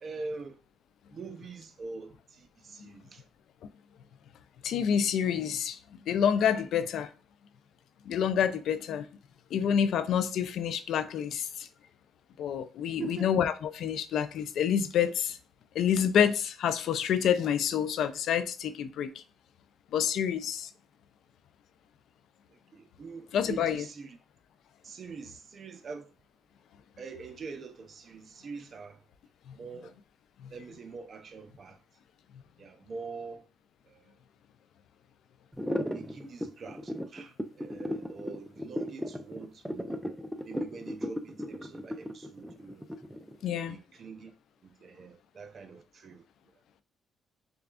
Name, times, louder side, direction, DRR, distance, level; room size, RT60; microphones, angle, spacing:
voice 1, 0.0-0.6 1.1-3.2 13.0-13.3 22.5-24.2 24.8-26.1 27.0-29.0 29.5-29.9 30.5-31.8 32.6-33.4 33.9-34.0 35.9-40.0 40.5-42.8 43.7-44.3 44.6-46.2, right 4 dB, 50° right, 0.7 m, -44 dB
voice 2, 4.6-7.1 8.1-9.0 9.5-11.7 12.4-15.4 15.8-19.1 19.9-20.7 23.3-23.8 30.4-30.5 43.4-43.8, left 8 dB, 75° left, 0.4 m, -28 dB
sound 1, 35.5-43.4, equal, ahead, 0.4 m, -35 dB
6.7 x 2.3 x 2.5 m
cardioid pair, 90°, 0 cm